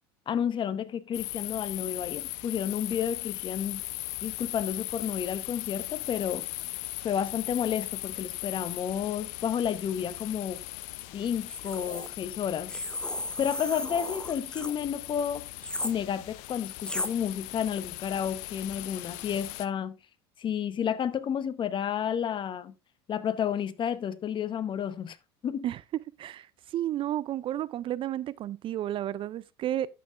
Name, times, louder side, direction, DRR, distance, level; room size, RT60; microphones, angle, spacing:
voice 1, 0.3-3.8 4.2-6.5 7.0-10.6 11.1-12.7 13.4-15.4 15.8-19.9 20.4-22.7 23.1-25.2 25.4-25.6, left 8 dB, 40° left, 0.9 m, -31 dB
sound 1, 1.1-19.7, left 19 dB, 65° left, 0.6 m, -39 dB
sound 2, 11.4-12.1 12.7-14.7 15.6-15.9 16.8-17.1, left 1 dB, 5° left, 0.8 m, -35 dB
voice 2, 26.7-29.9, right 12 dB, 40° right, 0.4 m, -32 dB
11.0 x 7.6 x 2.5 m
hypercardioid pair, 80°, 13 cm